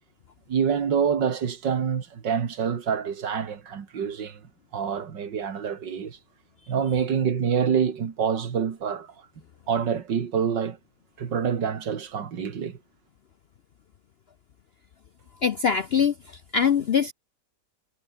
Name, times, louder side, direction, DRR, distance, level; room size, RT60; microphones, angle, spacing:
voice 1, 0.5-4.4 4.7-6.2 6.7-9.1 9.7-10.8 11.2-12.8, right 7 dB, 85° right, 2.5 m, -26 dB
voice 2, 15.4-17.1, left 7 dB, 80° left, 0.5 m, -23 dB
omnidirectional pair, 1.9 m